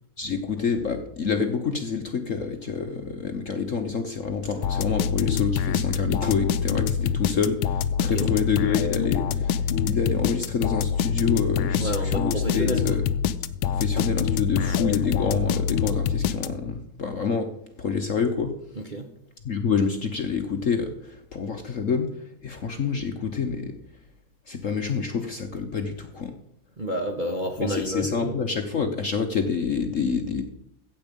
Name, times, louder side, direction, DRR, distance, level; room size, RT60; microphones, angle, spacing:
voice 1, 0.2-13.0 13.6-17.5 17.8-18.5 19.4-22.1 22.4-23.7 24.5-26.4 27.6-30.4, left 5 dB, 50° left, 6 dB, 1.0 m, -27 dB
sound 1, 4.6-16.8, left 8 dB, 85° left, 1.4 m, -25 dB
voice 2, 8.0-8.3 11.8-13.0 18.8-19.1 26.8-28.4, right 1 dB, 35° right, 2 dB, 0.8 m, -30 dB
15.0 x 8.1 x 5.2 m, 0.78 s
omnidirectional pair, 2.2 m